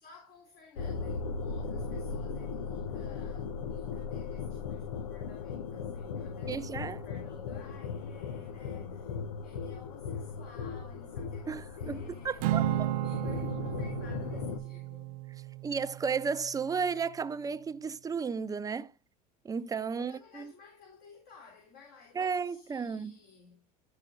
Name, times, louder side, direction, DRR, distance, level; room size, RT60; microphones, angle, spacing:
voice 1, 0.0-15.2 19.9-23.7, left 5 dB, 50° left, 4.1 m, -55 dB
sound 1, 0.8-14.6, left 5 dB, 85° left, 1.0 m, -38 dB
voice 2, 6.5-7.0 11.5-12.6 15.6-18.9 19.4-20.5 22.1-23.1, right 5 dB, 20° right, 0.6 m, -33 dB
Acoustic guitar / Strum, 12.4-16.9, right 14 dB, 70° right, 0.7 m, -34 dB
12.5 x 4.9 x 3.8 m
hypercardioid pair, 85°, 20 cm